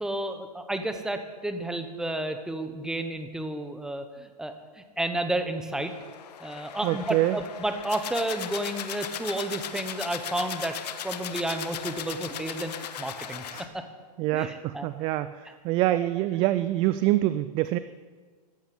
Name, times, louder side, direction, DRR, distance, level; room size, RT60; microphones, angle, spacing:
voice 1, 0.0-5.9 6.4-10.8 11.0-13.4 13.7-13.8 14.3-14.9 15.9-16.0, right 1 dB, 5° right, 7 dB, 1.1 m, -31 dB
sound 1, 5.8-13.7, left 9 dB, 75° left, 1.4 m, -37 dB
voice 2, 6.8-7.4 13.5-13.7 14.2-17.8, right 15 dB, 25° right, 13 dB, 0.4 m, -26 dB
15.0 x 11.5 x 8.3 m, 1.5 s
hypercardioid pair, 145°, 21 cm